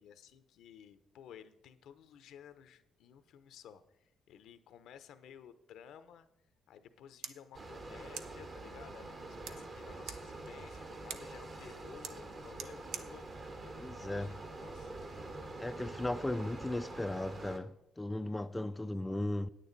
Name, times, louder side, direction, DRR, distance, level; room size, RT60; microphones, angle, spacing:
voice 1, 0.0-6.3 6.7-14.9, left 9 dB, 80° left, 0.8 m, -55 dB
sound 1, 6.8-14.8, right 8 dB, 90° right, 0.6 m, -51 dB
sound 2, 7.5-17.6, right 2 dB, 45° right, 1.5 m, -46 dB
voice 2, 13.8-14.4 15.6-19.5, left 1 dB, 15° left, 0.4 m, -36 dB
9.4 x 9.1 x 4.0 m
cardioid pair, 90°, 0 cm